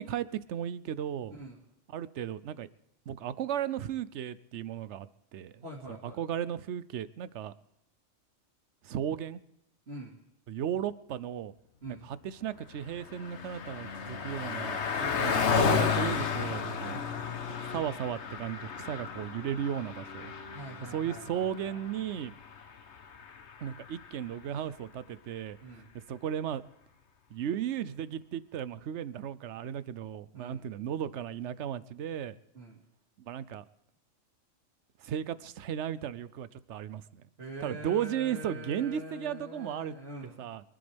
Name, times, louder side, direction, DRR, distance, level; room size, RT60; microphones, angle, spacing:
voice 1, 0.0-1.3 1.9-2.7 3.1-5.1 5.3-5.6 5.9-7.5 8.8-9.4 10.5-11.5 11.9-14.8 15.2-17.0 17.6-20.3 20.9-22.3 23.6-25.6 26.1-26.6 27.3-32.3 33.2-33.6 35.0-37.2 37.6-40.0 40.4-40.6, right 9 dB, 65° right, 16 dB, 0.9 m, -35 dB
voice 2, 5.6-6.2 9.9-10.2 11.8-12.1 15.0-15.3 16.9-17.2 20.5-21.7 25.6-25.9 30.3-30.6 32.5-32.8 37.4-40.5, equal, 50° right, -4 dB, 2.5 m, -44 dB
Car passing by, 12.5-24.2, left 6 dB, 60° left, 1.2 m, -33 dB
25.5 x 11.5 x 3.5 m, 0.84 s
omnidirectional pair, 1.4 m